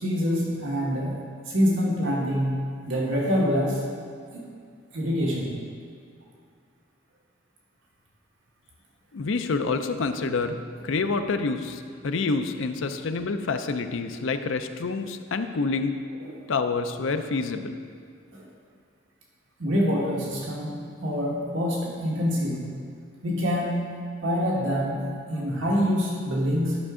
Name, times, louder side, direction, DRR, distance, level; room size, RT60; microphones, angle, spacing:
voice 1, 0.0-2.6 2.9-3.8 4.9-5.5 16.2-16.4 18.3-18.4 19.6-20.8 21.0-22.7 23.2-23.8 24.2-25.0 25.3-26.8, equal, 70° right, -4 dB, 1.6 m, -25 dB
voice 2, 9.1-16.0 16.5-17.8, left 4 dB, 75° left, 8 dB, 0.5 m, -27 dB
12.0 x 5.9 x 3.7 m, 2.2 s
head